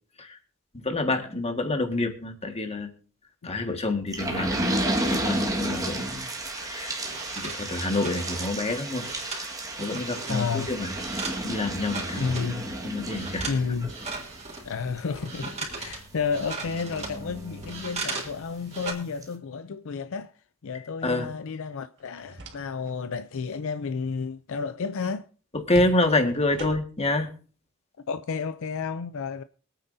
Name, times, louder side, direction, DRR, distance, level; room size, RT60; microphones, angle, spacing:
voice 1, 0.7-2.9 3.4-4.7 5.1-6.3 6.6-7.0 7.4-9.5 9.8-10.9 11.4-12.3 12.8-13.5 21.0-21.3 25.5-27.3, left 2 dB, 30° left, 1.7 m, -27 dB
sound 1, 4.1-18.4 18.9-19.0 19.2-19.3, right 1 dB, 15° right, 1.7 m, -33 dB
sound 2, 6.9-10.4 10.7-12.5 12.9-13.6 13.9-18.4 18.6-18.9, right 3 dB, 30° right, 3.6 m, -37 dB
voice 2, 10.3-10.7 12.2-12.7 13.5-13.9 14.6-20.3 20.6-25.3 28.1-29.4, left 5 dB, 65° left, 0.5 m, -31 dB
sound 3, 22.0-23.0 23.3-23.7 25.7-27.1, right 1 dB, 55° right, 1.9 m, -43 dB
24.0 x 9.0 x 2.7 m
head